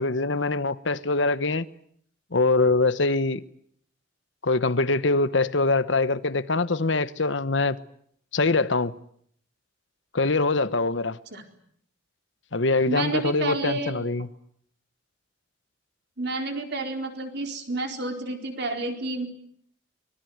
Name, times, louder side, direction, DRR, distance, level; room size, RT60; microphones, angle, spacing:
voice 1, 0.0-1.7 2.3-3.4 4.4-7.8 8.3-8.9 10.1-11.2 12.5-14.3, left 3 dB, 65° left, 1.2 m, -23 dB
voice 2, 12.9-14.1 16.2-19.3, right 2 dB, 55° right, 4.3 m, -30 dB
24.5 x 21.5 x 9.5 m
head